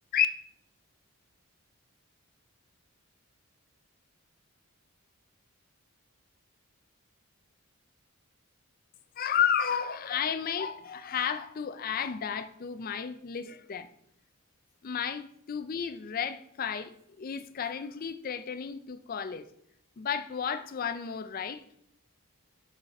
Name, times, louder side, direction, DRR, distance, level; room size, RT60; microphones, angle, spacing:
voice 1, 9.2-13.9 14.8-19.5 20.0-21.6, left 8 dB, 40° left, 0.4 m, -32 dB
5.6 x 5.6 x 4.1 m
head